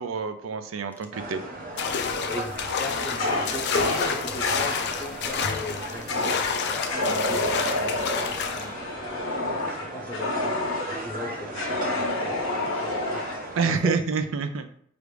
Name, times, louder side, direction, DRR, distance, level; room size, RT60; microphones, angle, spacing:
voice 1, 0.0-1.4 13.6-14.7, right 5 dB, 80° right, 9 dB, 0.5 m, -27 dB
sound 1, 1.1-13.8, right 1 dB, 45° right, 0.7 m, -36 dB
sound 2, 1.8-8.7, left 6 dB, 55° left, 0.4 m, -29 dB
voice 2, 2.2-7.9 8.3-9.0 9.2-10.6 10.9-13.2 13.6-13.9, left 1 dB, 10° left, 0 dB, 0.6 m, -39 dB
Fire, 3.2-4.8 6.1-6.5 6.9-11.0 11.5-13.4, left 2 dB, 85° left, 1.0 m, -29 dB
5.0 x 2.5 x 3.2 m, 0.63 s
head